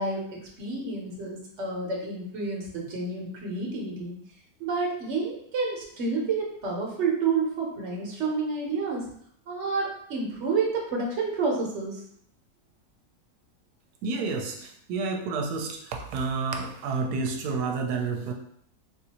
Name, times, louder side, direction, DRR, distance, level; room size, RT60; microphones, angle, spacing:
voice 1, 0.0-4.2 4.6-9.0 9.5-12.0, right 4 dB, 50° right, -1 dB, 1.1 m, -29 dB
voice 2, 14.0-18.3, right 4 dB, 85° right, 2 dB, 1.1 m, -30 dB
3.7 x 2.6 x 2.9 m, 0.65 s
omnidirectional pair, 1.7 m